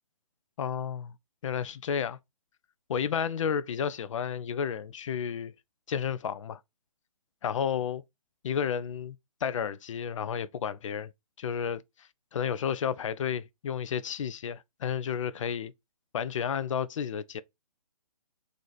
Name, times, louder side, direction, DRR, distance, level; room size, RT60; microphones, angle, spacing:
voice 1, 0.6-1.1 1.4-2.2 2.9-5.5 5.9-6.6 7.4-8.0 8.4-9.2 9.4-11.1 11.4-11.8 12.3-15.7 16.1-17.4, left 7 dB, 55° left, 0.4 m, -31 dB
3.0 x 2.6 x 3.9 m
hypercardioid pair, 145°, 20 cm